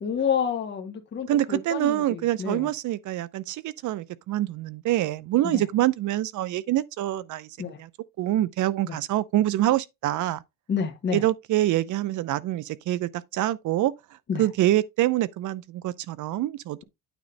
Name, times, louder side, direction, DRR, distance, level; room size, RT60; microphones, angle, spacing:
voice 1, 0.0-2.7 5.4-5.6 7.6-7.8 8.8-9.0 10.7-11.2 14.3-14.5, left 7 dB, 35° left, 1.4 m, -29 dB
voice 2, 1.3-7.5 7.8-7.9 8.2-10.4 11.1-13.9 14.4-16.8, right 14 dB, 65° right, 0.6 m, -25 dB
9.1 x 3.1 x 5.1 m
cardioid pair, 150°, 32 cm